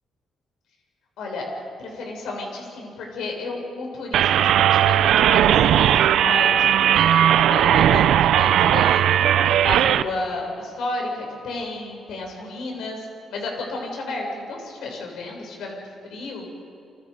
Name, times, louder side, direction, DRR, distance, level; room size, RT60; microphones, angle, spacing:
voice 1, 1.8-9.0 9.4-15.8 16.0-16.5, left 2 dB, 75° left, 0 dB, 7.3 m, -32 dB
sound 1, 4.1-10.0, right 10 dB, 80° right, 0.7 m, -17 dB
29.5 x 25.0 x 5.4 m, 2.6 s
cardioid pair, 90°, 0 cm